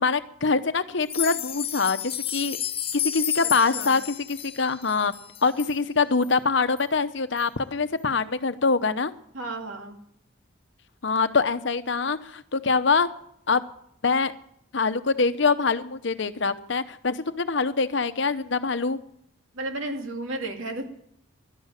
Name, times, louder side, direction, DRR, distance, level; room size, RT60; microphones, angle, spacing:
voice 1, 0.0-2.6 2.9-4.0 4.3-5.1 5.4-9.1 11.0-13.1 13.5-13.6 14.0-14.3 14.7-19.0, left 4 dB, 65° left, 11 dB, 0.8 m, -24 dB
sound 1, 1.0-5.8 6.2-6.3 6.8-6.9 7.4-7.5, left 11 dB, 30° left, 0.5 m, -31 dB
voice 2, 3.6-4.0 9.3-10.0 19.5-20.8, right 2 dB, 85° right, 3 dB, 2.5 m, -33 dB
12.0 x 11.5 x 9.0 m, 0.71 s
head